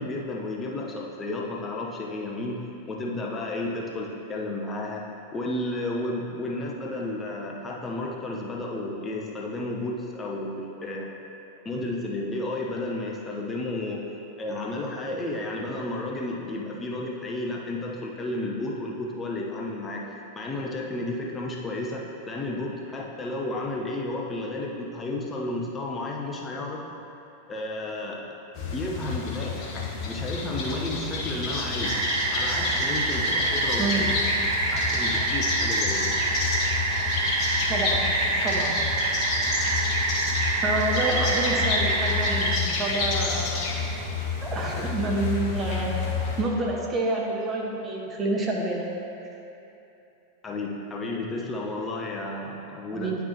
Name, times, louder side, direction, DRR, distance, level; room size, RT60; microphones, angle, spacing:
voice 1, 0.0-11.1 11.6-14.1 14.4-20.1 20.3-26.9 27.5-28.3 28.7-32.0 32.3-34.2 34.7-36.1 50.4-53.1, left 2 dB, 20° left, -2 dB, 0.9 m, -32 dB
sound 1, 28.6-46.4, left 4 dB, 45° left, 1.3 m, -29 dB
sound 2, 31.8-42.6, right 3 dB, 60° right, 0.5 m, -27 dB
voice 2, 37.7-38.1 38.4-38.9 40.6-43.7 44.4-46.0 46.4-48.9 52.9-53.1, right 2 dB, 25° right, -2 dB, 1.3 m, -28 dB
10.0 x 6.0 x 2.9 m, 2.9 s
figure-of-eight pair, 90°, 0 cm